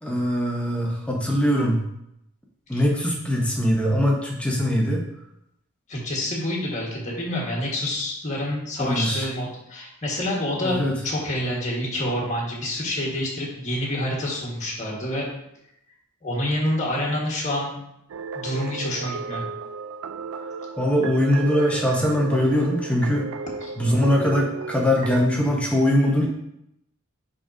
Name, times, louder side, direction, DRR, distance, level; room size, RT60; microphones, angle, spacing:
voice 1, 0.0-1.9 2.7-5.0 8.8-9.2 10.6-10.9 20.8-23.3 23.8-26.3, equal, 5° left, -1 dB, 0.9 m, -22 dB
voice 2, 5.9-15.3 16.2-17.8 18.3-19.4 23.6-23.7, left 1 dB, 35° left, -3 dB, 1.6 m, -27 dB
sound 1, 18.1-25.3, right 4 dB, 70° right, 0.3 m, -34 dB
9.8 x 3.7 x 2.7 m, 0.80 s
head